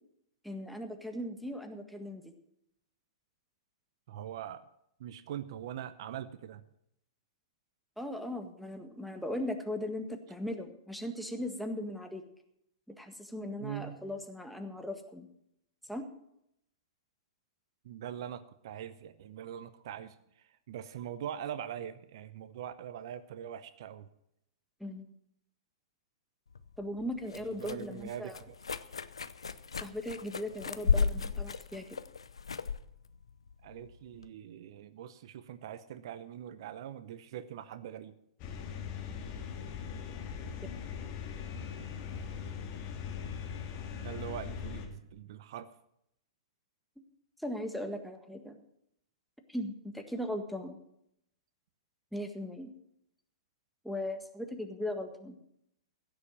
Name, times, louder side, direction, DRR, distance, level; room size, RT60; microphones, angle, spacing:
voice 1, 0.4-2.3 8.0-12.2 12.9-15.3 15.9-16.0 24.8-25.0 26.8-28.4 29.8-32.0 47.4-48.6 49.5-50.8 52.1-52.7 53.8-55.4, left 1 dB, ahead, 5 dB, 1.7 m, -38 dB
voice 2, 4.1-4.6 5.0-6.6 13.6-14.0 17.8-24.1 27.4-28.6 33.6-38.1 43.9-45.7, right 10 dB, 60° right, 14 dB, 0.7 m, -42 dB
sound 1, 26.5-34.3, left 5 dB, 80° left, 0.7 m, -35 dB
sound 2, 38.4-44.9, left 7 dB, 45° left, 2.5 m, -40 dB
16.0 x 7.0 x 7.3 m, 0.77 s
figure-of-eight pair, 110°, 3 cm